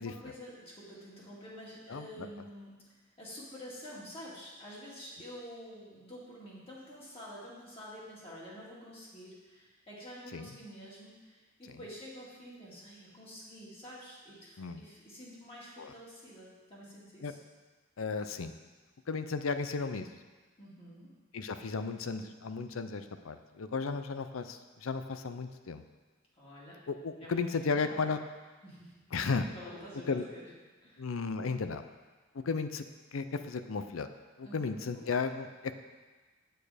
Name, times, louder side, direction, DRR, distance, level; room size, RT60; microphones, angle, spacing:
voice 1, 0.0-17.4 20.6-21.1 26.4-26.8 27.2-28.0 28.6-28.9 29.5-30.5 30.8-31.1 34.4-35.1, equal, 30° left, -6 dB, 2.3 m, -48 dB
voice 2, 1.9-2.3 10.3-10.5 14.6-14.8 15.8-15.9 17.2-17.3 18.0-18.5 19.1-20.1 21.3-25.8 26.9-28.2 29.1-29.5 30.1-30.3 31.0-31.8 32.3-32.8 33.1-34.1 34.4-35.8, left 4 dB, 80° left, 10 dB, 0.6 m, -34 dB
8.7 x 6.8 x 5.0 m, 1.3 s
head